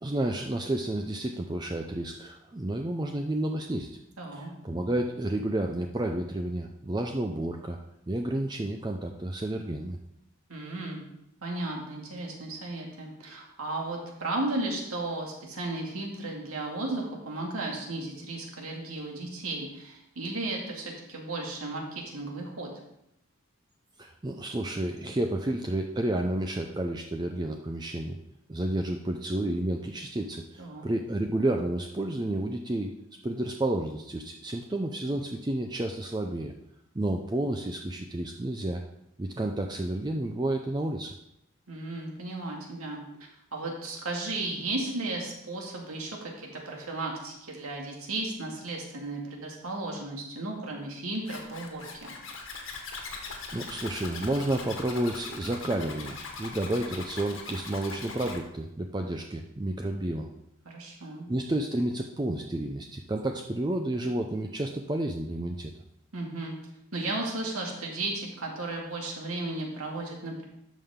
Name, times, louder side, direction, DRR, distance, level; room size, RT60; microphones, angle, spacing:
voice 1, 0.0-4.0 4.3-7.8 8.1-10.0 24.0-28.2 28.5-32.9 33.2-36.5 36.9-38.8 39.2-41.1 53.5-60.3 61.3-65.7, right 1 dB, 20° right, 3 dB, 0.4 m, -31 dB
voice 2, 4.2-4.5 10.5-11.0 11.4-22.7 30.6-30.9 41.7-52.1 60.6-61.3 66.1-66.5 66.9-70.4, right 2 dB, 85° right, 0 dB, 2.2 m, -35 dB
Zipper (clothing), 51.2-58.4, left 4 dB, 65° left, 1.5 m, -41 dB
12.5 x 5.6 x 3.7 m, 0.82 s
head